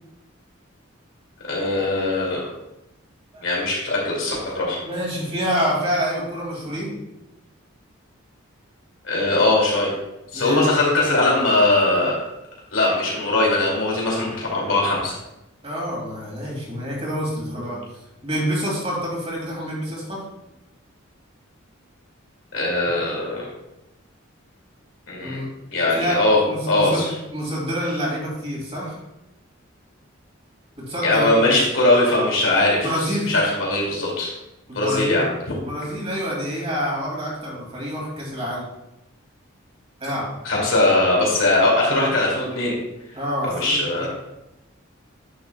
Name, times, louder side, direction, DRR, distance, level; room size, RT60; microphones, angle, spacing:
voice 1, 1.5-2.4 3.4-4.8 9.0-9.9 10.3-12.2 12.7-15.1 22.5-23.5 25.1-25.4 25.7-26.4 26.7-27.0 31.0-32.8 33.3-34.3 34.7-35.2 40.4-42.7 43.4-44.1, left 2 dB, 70° left, -4 dB, 2.7 m, -20 dB
voice 2, 4.8-7.0 10.3-10.7 15.6-20.2 25.2-25.5 25.9-26.2 26.5-27.1 27.3-29.0 30.8-31.6 32.8-33.3 34.7-35.2 35.5-38.6 40.0-40.3 43.1-44.1, equal, 30° right, -4 dB, 2.7 m, -27 dB
9.8 x 6.9 x 2.4 m, 0.93 s
head